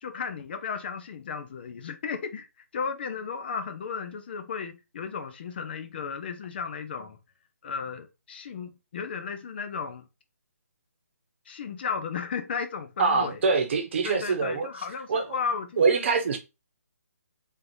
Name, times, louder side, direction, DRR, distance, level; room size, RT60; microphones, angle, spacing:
voice 1, 0.0-2.5 2.7-7.2 7.6-10.1 11.5-13.4 14.0-16.1, left 6 dB, 40° left, 0.6 m, -34 dB
voice 2, 13.0-14.7 15.1-15.4 15.8-16.4, right 4 dB, 45° right, 1.0 m, -24 dB
3.5 x 3.1 x 2.6 m
figure-of-eight pair, 150°, 9 cm